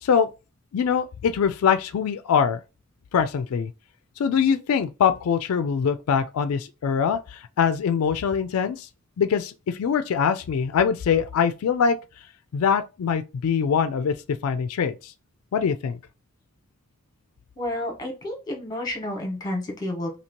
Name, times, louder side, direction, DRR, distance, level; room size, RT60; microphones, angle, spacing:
voice 1, 0.7-2.6 3.1-3.7 4.2-8.9 9.2-12.0 12.5-14.2 14.4-15.1 15.5-16.0, left 7 dB, 90° left, 0.4 m, -23 dB
voice 2, 17.6-20.1, left 1 dB, 20° left, 1.2 m, -30 dB
2.8 x 2.8 x 4.3 m
head